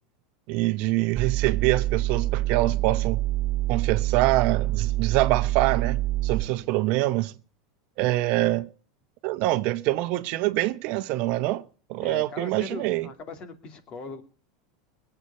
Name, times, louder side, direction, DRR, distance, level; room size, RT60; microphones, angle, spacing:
voice 1, 0.5-3.2 3.7-7.3 8.0-8.7 9.2-11.6 11.9-13.1, right 17 dB, 55° right, 0.9 m, -25 dB
sound 1, 1.1-6.4, right 15 dB, 25° right, 2.1 m, -26 dB
voice 2, 6.4-6.7 12.0-14.2, left 4 dB, 40° left, 2.5 m, -40 dB
19.5 x 8.1 x 5.5 m
supercardioid pair, 120°, 3 cm